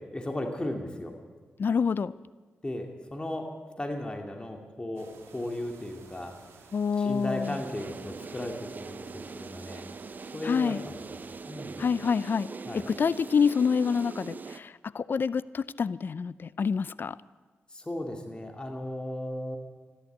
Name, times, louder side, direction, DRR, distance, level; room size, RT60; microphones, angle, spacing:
voice 1, 0.1-1.1 2.6-6.3 7.0-9.9 10.3-11.8 12.7-12.9 17.7-19.6, left 1 dB, 20° left, 3 dB, 2.3 m, -36 dB
voice 2, 1.6-2.1 6.7-7.6 10.4-10.8 11.8-12.5 12.7-17.1, left 6 dB, 55° left, 18 dB, 0.5 m, -27 dB
sound 1, 4.9-11.4, right 5 dB, 85° right, 1.6 m, -54 dB
sound 2, 7.4-14.6, right 4 dB, 45° right, 0.6 m, -42 dB
13.5 x 11.5 x 9.1 m, 1.4 s
cardioid pair, 60°, 4 cm